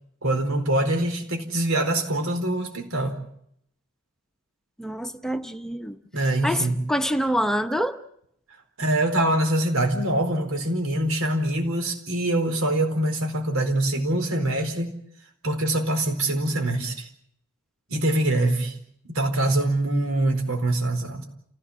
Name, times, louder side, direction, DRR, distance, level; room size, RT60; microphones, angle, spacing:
voice 1, 0.2-3.2 6.1-6.8 8.8-14.9 15.4-17.1 17.9-18.7 19.1-21.2, right 1 dB, 90° right, 4.5 m, -24 dB
voice 2, 4.8-6.0 6.4-8.0, equal, ahead, 0.9 m, -26 dB
29.5 x 16.5 x 7.4 m
head